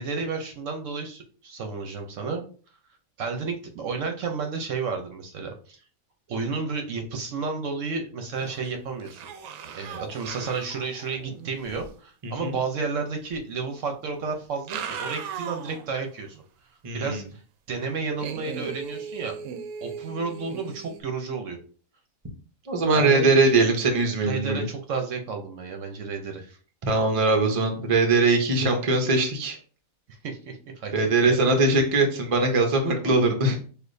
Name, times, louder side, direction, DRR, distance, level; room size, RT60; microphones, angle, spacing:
voice 1, 0.0-2.4 3.2-5.8 6.3-9.3 9.6-16.4 16.9-17.4 17.7-19.3 19.8-21.6 22.9-23.5 24.2-26.6 30.1-31.4 33.0-33.3, right 4 dB, 65° right, 4 dB, 1.0 m, -32 dB
sound 1, 8.3-8.7 9.0-11.9 13.3-13.4 14.4-15.9 16.3-16.4 18.2-21.0, right 7 dB, 90° right, 1.0 m, -38 dB
voice 2, 12.2-12.5 16.8-17.2 22.7-24.6 26.8-29.6 30.9-33.5, right 3 dB, 30° right, 3 dB, 0.7 m, -21 dB
6.4 x 2.5 x 2.6 m, 0.41 s
omnidirectional pair, 1.5 m